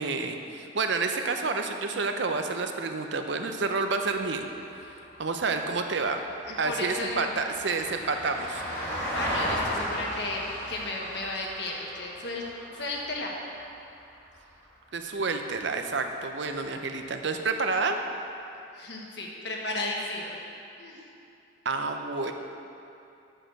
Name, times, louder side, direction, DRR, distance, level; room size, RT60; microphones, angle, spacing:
voice 1, 0.0-4.4 5.2-6.2 6.6-8.6 14.9-18.0 21.6-22.3, right 4 dB, 65° right, 6 dB, 0.6 m, -29 dB
Vehicle, 3.9-14.3 16.6-16.7, equal, 10° left, 2.3 m, -36 dB
voice 2, 6.5-7.4 8.8-12.4 12.7-13.3 18.7-20.4 20.8-21.0, left 2 dB, 60° left, -1 dB, 1.2 m, -34 dB
7.8 x 6.6 x 6.2 m, 2.7 s
head